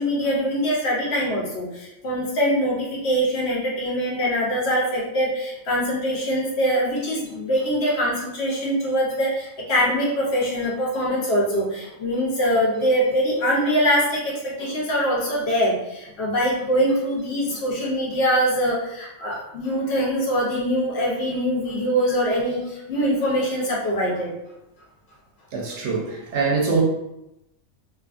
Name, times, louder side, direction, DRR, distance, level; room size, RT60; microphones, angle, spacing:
voice 1, 0.0-24.3, equal, 60° left, -3 dB, 0.8 m, -23 dB
voice 2, 25.5-26.8, right 4 dB, 70° right, -1 dB, 0.8 m, -23 dB
2.5 x 2.4 x 2.4 m, 0.86 s
omnidirectional pair, 1.3 m